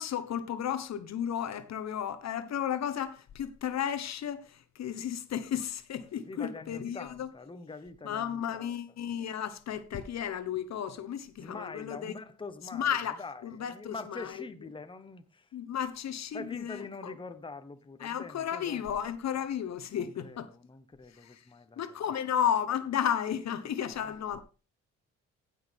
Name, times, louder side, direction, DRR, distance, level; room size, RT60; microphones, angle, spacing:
voice 1, 0.0-7.3 8.0-12.1 12.7-14.4 15.5-17.1 18.0-20.5 21.2-21.4 21.8-24.4, left 9 dB, 60° left, 1.1 m, -33 dB
voice 2, 6.2-8.7 11.4-15.5 16.3-18.8 19.9-21.8 23.8-24.1, left 3 dB, 15° left, 1.1 m, -45 dB
15.0 x 6.5 x 3.6 m
cardioid pair, 90°, 30 cm